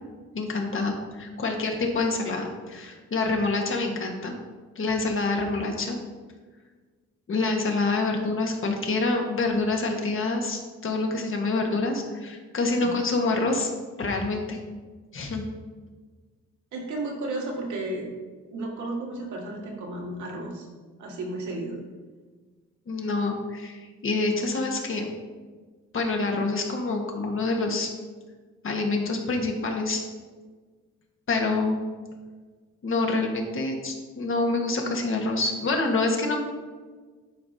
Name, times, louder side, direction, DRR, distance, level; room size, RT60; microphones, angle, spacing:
voice 1, 0.3-4.4 4.7-6.0 7.3-13.7 14.0-14.6 15.1-15.5 22.9-25.1 25.9-27.9 28.6-30.0 31.3-31.8 32.8-36.4, left 3 dB, 45° left, 2 dB, 1.4 m, -26 dB
voice 2, 16.7-18.1 18.5-20.7 21.0-21.8, right 2 dB, 70° right, -1 dB, 1.9 m, -33 dB
11.0 x 4.8 x 2.8 m, 1.4 s
cardioid pair, 90°, 30 cm